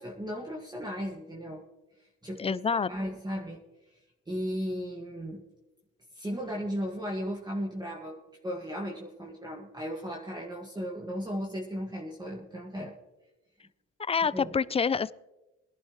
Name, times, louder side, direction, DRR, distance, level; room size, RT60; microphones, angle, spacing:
voice 1, 0.0-1.6 2.2-3.6 4.3-5.4 6.1-12.9 14.3-14.5, equal, 15° right, -1 dB, 1.7 m, -36 dB
voice 2, 2.4-2.9 14.1-15.1, left 5 dB, 20° left, 19 dB, 0.3 m, -27 dB
22.0 x 11.0 x 3.1 m, 1.0 s
cardioid pair, 90°, 30 cm